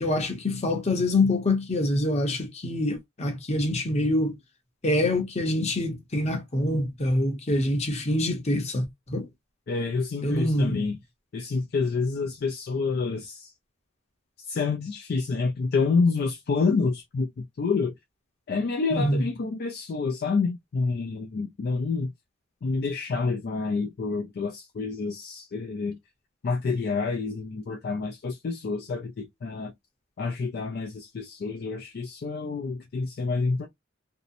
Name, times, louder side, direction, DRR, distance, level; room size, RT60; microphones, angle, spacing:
voice 1, 0.0-4.4 4.8-9.3 10.2-10.9 18.9-19.2, left 1 dB, 35° left, 0.7 m, -25 dB
voice 2, 9.7-11.0 11.3-13.5 14.4-17.9 18.5-22.1 22.6-26.0 26.4-29.7 30.2-33.7, left 4 dB, 50° left, 0.3 m, -28 dB
2.7 x 2.0 x 2.5 m
head